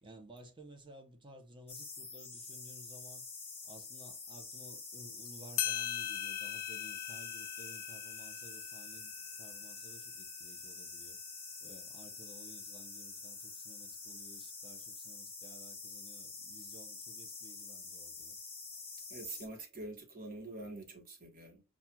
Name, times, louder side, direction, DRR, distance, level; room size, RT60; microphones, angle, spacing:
voice 1, 0.0-3.2 3.6-11.2 11.6-18.4, right 1 dB, 20° right, 0.8 m, -56 dB
sound 1, 1.7-19.5, left 4 dB, 10° left, 0.9 m, -47 dB
sound 2, 5.2-5.3 5.6-10.7, left 12 dB, 70° left, 0.5 m, -40 dB
voice 2, 19.1-21.6, right 2 dB, 40° right, 1.2 m, -45 dB
5.8 x 2.4 x 2.3 m
head